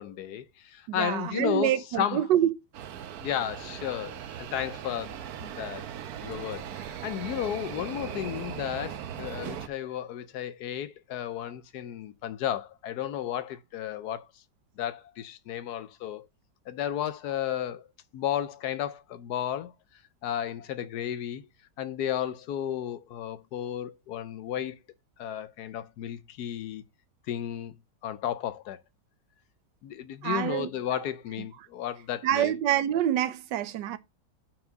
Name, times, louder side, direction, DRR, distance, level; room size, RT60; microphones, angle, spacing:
voice 1, 0.0-2.3 3.2-5.8 6.2-14.3 14.8-16.3 16.7-17.9 18.1-19.7 20.2-21.5 21.8-24.8 25.2-26.8 27.3-27.7 28.0-28.8 29.8-32.6, left 10 dB, 70° left, 1.1 m, -33 dB
voice 2, 0.9-2.5 30.2-30.7 32.2-34.0, right 11 dB, 80° right, 1.3 m, -26 dB
sound 1, 2.7-9.7, right 9 dB, 65° right, 1.1 m, -39 dB
5.6 x 4.6 x 6.4 m
omnidirectional pair, 1.9 m